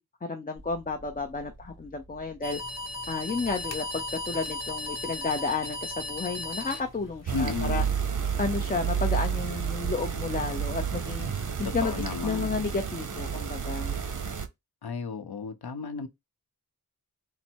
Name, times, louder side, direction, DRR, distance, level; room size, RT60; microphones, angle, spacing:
voice 1, 0.2-2.6 3.1-7.8 8.4-11.3 11.6-11.9 12.2-14.0, left 4 dB, 25° left, 0.6 m, -32 dB
sound 1, 0.5-12.8, right 1 dB, 10° right, 2.7 m, -53 dB
sound 2, 2.4-7.4, left 2 dB, 45° left, 0.9 m, -36 dB
voice 2, 7.3-7.9 11.6-12.5 14.8-16.1, left 5 dB, 75° left, 0.7 m, -34 dB
sound 3, 7.3-14.5, right 7 dB, 55° right, 0.7 m, -30 dB
4.2 x 2.0 x 4.4 m
wide cardioid pair, 55°, 38 cm